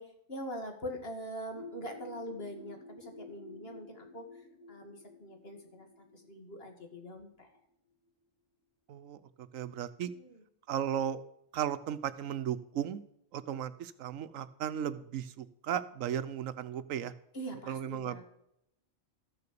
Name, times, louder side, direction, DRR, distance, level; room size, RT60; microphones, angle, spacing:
voice 1, 0.0-4.4 4.7-7.5 10.1-10.4 17.3-18.3, equal, 50° left, 4 dB, 2.3 m, -43 dB
sound 1, 1.5-7.1, left 3 dB, 70° left, 6.8 m, -51 dB
voice 2, 8.9-10.1 10.7-11.2 11.5-13.0 13.3-17.1 17.7-18.3, right 9 dB, 85° right, 15 dB, 1.1 m, -35 dB
14.0 x 6.8 x 6.7 m, 0.78 s
omnidirectional pair, 1.3 m